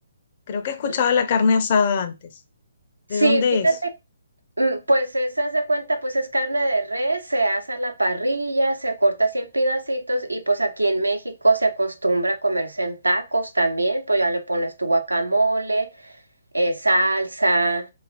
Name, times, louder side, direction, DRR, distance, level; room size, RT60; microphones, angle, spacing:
voice 1, 0.5-2.1 3.1-3.7, left 5 dB, 40° left, 0.4 m, -21 dB
voice 2, 3.1-3.8 4.6-15.9 16.5-17.9, right 2 dB, 85° right, 0.5 m, -22 dB
2.9 x 2.4 x 2.4 m
figure-of-eight pair, 135°, 0 cm